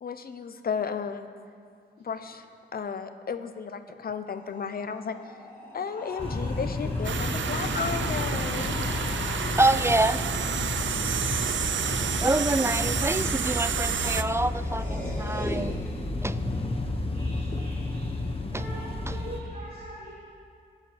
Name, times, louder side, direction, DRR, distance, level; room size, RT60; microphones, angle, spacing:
voice 1, 0.0-1.3 2.0-2.4 2.7-5.2 5.7-8.8, left 6 dB, 50° left, 9 dB, 0.8 m, -33 dB
sound 1, 4.3-10.0 13.9-14.0 14.2-16.2, equal, 10° left, 3.5 m, -39 dB
sound 2, 6.2-19.4, left 2 dB, 30° left, 1.2 m, -31 dB
sound 3, 7.0-14.2, right 8 dB, 80° right, 0.6 m, -30 dB
voice 2, 9.6-10.2 12.2-15.8 16.2-16.4 18.5-18.7 19.1-19.2, right 2 dB, 15° right, 14 dB, 0.3 m, -26 dB
voice 3, 11.7-12.4 17.1-18.1 18.5-20.1, right 1 dB, 50° right, -9 dB, 3.3 m, -43 dB
20.0 x 11.0 x 4.3 m, 2.2 s
wide cardioid pair, 130°, 19 cm